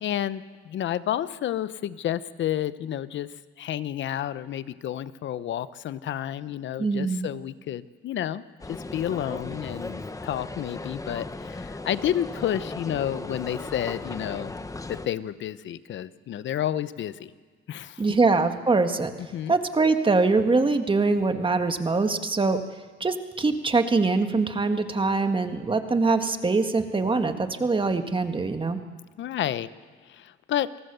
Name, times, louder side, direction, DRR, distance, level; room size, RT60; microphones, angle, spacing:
voice 1, 0.0-3.3 3.6-14.5 14.9-17.3 17.7-18.2 19.2-19.5 29.2-29.7 30.1-30.7, left 11 dB, 70° left, 15 dB, 0.9 m, -30 dB
voice 2, 6.8-7.3 18.0-19.1 19.5-22.6 23.0-28.8, right 3 dB, 25° right, 7 dB, 1.8 m, -23 dB
sound 1, 8.6-15.1, left 2 dB, 15° left, 1.2 m, -36 dB
28.0 x 19.0 x 6.9 m, 1.4 s
cardioid pair, 90°, 20 cm